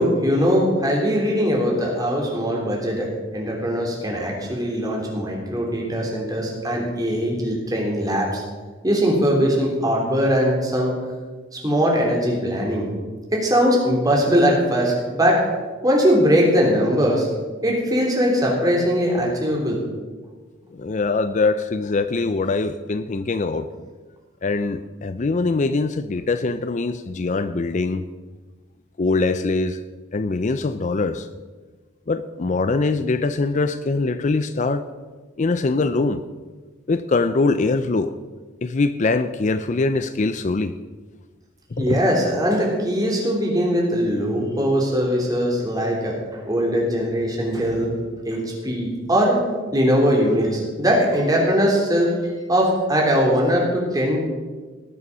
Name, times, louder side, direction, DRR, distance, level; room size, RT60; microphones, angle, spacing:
voice 1, 0.0-3.1 3.3-8.4 8.8-10.9 11.5-12.9 13.3-15.4 15.8-17.3 17.6-19.8 41.8-46.1 46.5-47.9 48.2-49.4 49.7-54.2, equal, 20° right, -2 dB, 3.4 m, -20 dB
voice 2, 20.7-23.9 24.4-28.0 29.0-29.8 30.1-31.3 32.1-34.9 35.4-36.2 36.9-38.1 38.6-40.8 41.7-42.0, left 3 dB, 40° left, 12 dB, 0.4 m, -23 dB
19.0 x 7.0 x 6.0 m, 1.4 s
head